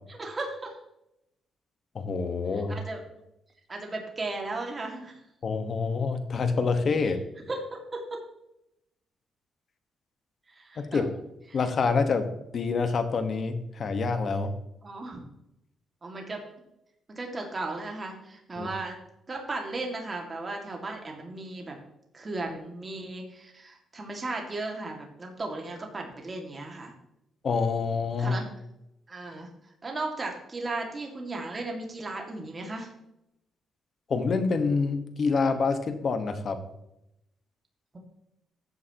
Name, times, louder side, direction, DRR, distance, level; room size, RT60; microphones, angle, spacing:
voice 1, 0.1-0.8 2.7-3.0 3.7-5.2 7.5-7.6 7.9-8.2 10.5-11.0 11.5-11.6 14.8-15.2 16.0-16.4 17.2-19.0 19.3-21.8 22.1-26.9 28.2-28.5 29.1-29.5 29.8-32.9, right 2 dB, 30° right, 1 dB, 2.1 m, -35 dB
voice 2, 1.9-2.8 5.4-7.2 10.8-11.1 11.5-14.5 18.6-18.7 27.4-28.4 34.1-36.6, left 4 dB, 50° left, 8 dB, 1.4 m, -27 dB
14.0 x 8.3 x 3.0 m, 0.84 s
cardioid pair, 95°, 0 cm